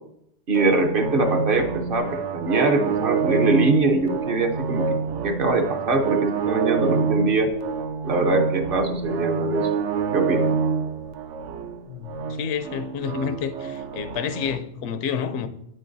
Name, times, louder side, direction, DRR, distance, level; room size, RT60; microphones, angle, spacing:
voice 1, 0.5-5.0 5.2-7.5 8.0-9.7 10.1-10.5, right 3 dB, 55° right, 0.9 m, -23 dB
sound 1, 0.5-14.6, right 5 dB, 90° right, 0.9 m, -27 dB
voice 2, 11.9-15.5, left 7 dB, 85° left, 0.9 m, -29 dB
9.0 x 6.2 x 2.6 m
omnidirectional pair, 1.2 m